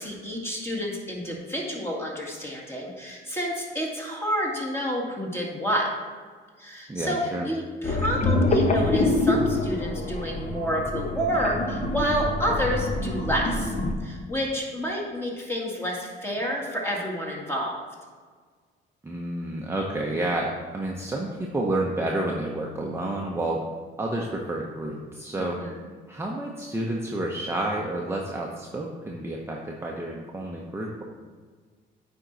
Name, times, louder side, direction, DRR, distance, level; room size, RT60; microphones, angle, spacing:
voice 1, 0.0-5.9 6.6-13.7 14.0-17.8 25.4-25.8, equal, 10° left, -2 dB, 2.0 m, -29 dB
voice 2, 6.9-7.4 19.0-23.6 24.0-25.6 26.1-31.0, right 1 dB, 10° right, -2 dB, 0.8 m, -30 dB
sound 1, 7.8-13.9, left 2 dB, 35° left, 1.0 m, -25 dB
8.9 x 4.5 x 4.0 m, 1.6 s
cardioid pair, 90°, 20 cm